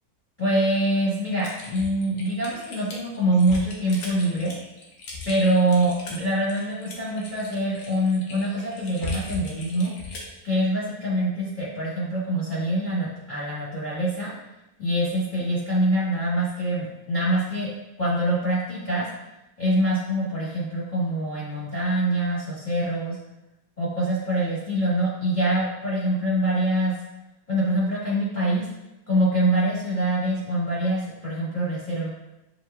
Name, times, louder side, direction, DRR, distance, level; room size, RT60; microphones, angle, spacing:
voice 1, 0.4-4.5 5.2-9.9 10.4-14.3 14.8-17.7 18.0-19.1 19.6-23.2 23.8-26.9 27.5-28.7 29.1-32.1, right 1 dB, 30° left, -10 dB, 1.2 m, -24 dB
Typing, 1.4-10.4, left 4 dB, 80° left, 1.4 m, -38 dB
7.0 x 2.8 x 2.2 m, 0.94 s
omnidirectional pair, 1.7 m